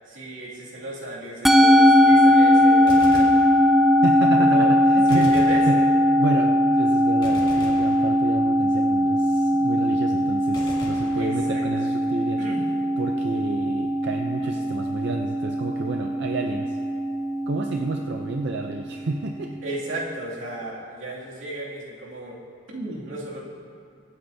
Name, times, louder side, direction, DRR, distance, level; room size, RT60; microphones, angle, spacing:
voice 1, 0.1-3.4 4.3-4.7 5.1-5.6 11.2-11.9 12.4-12.6 14.4-14.6 19.6-22.4 22.7-23.4, right 1 dB, 85° right, -5 dB, 2.4 m, -34 dB
Musical instrument, 1.4-19.9, equal, ahead, 0.3 m, -20 dB
Gunshot gunfire, 2.9-4.1 5.1-6.3 7.2-8.7 10.5-11.9, left 1 dB, 25° left, 1.6 m, -40 dB
voice 2, 4.0-5.4 5.7-5.8 6.2-12.4 13.0-16.8 17.5-19.5, right 3 dB, 60° right, 3 dB, 0.5 m, -30 dB
23.5 x 8.9 x 2.7 m, 2.3 s
head